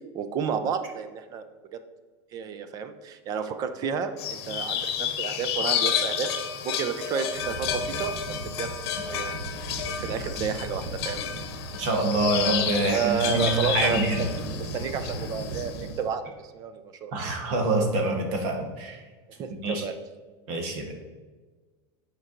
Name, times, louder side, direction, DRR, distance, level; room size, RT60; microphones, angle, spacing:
voice 1, 0.1-1.4 2.3-6.3 6.6-8.1 8.6-8.7 9.1-9.3 9.9-11.2 12.8-14.3 14.6-16.2 16.5-17.1 19.4-19.9, right 7 dB, 25° right, 10 dB, 0.4 m, -31 dB
sound 1, 4.2-15.9, left 8 dB, 65° left, 0.9 m, -31 dB
sound 2, 7.3-16.0, right 2 dB, 70° right, 1.4 m, -38 dB
voice 2, 11.8-14.2 17.1-19.0 19.6-19.8 20.5-20.9, right 2 dB, 45° right, 3 dB, 1.3 m, -26 dB
9.4 x 4.6 x 3.8 m, 1.3 s
supercardioid pair, 170°, 14 cm